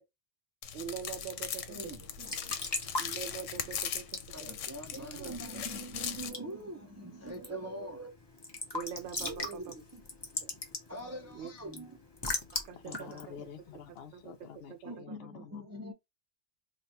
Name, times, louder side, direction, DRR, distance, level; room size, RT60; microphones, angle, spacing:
sound 1, 0.6-6.3, left 8 dB, 90° left, 1.0 m, -39 dB
voice 1, 0.7-1.8 3.0-4.1 4.4-4.5 5.2-5.3 7.5-7.7 8.7-9.8 10.4-10.5 11.4-11.5 12.6-13.4 14.1-14.3 14.7-15.0, right 8 dB, 75° right, 0.9 m, -43 dB
voice 2, 1.7-2.8 4.3-8.1 9.2-10.0 10.9-12.0 14.8-15.9, right 1 dB, 25° right, 0.4 m, -43 dB
Raindrop / Drip / Trickle dribble, 2.0-14.5, left 2 dB, 25° left, 0.8 m, -42 dB
voice 3, 12.7-15.6, left 8 dB, 60° left, 0.8 m, -49 dB
3.2 x 2.4 x 4.2 m
omnidirectional pair, 1.2 m